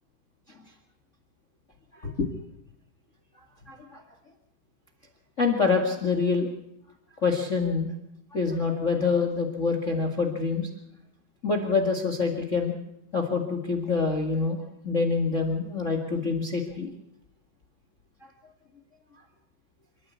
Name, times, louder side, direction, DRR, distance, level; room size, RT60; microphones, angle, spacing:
voice 1, 1.9-2.3 3.7-4.0 5.4-6.5 7.2-7.9 8.3-10.7 11.4-12.7 13.1-16.9, left 4 dB, 60° left, 4 dB, 0.7 m, -26 dB
28.0 x 14.0 x 8.3 m, 0.79 s
omnidirectional pair, 5.1 m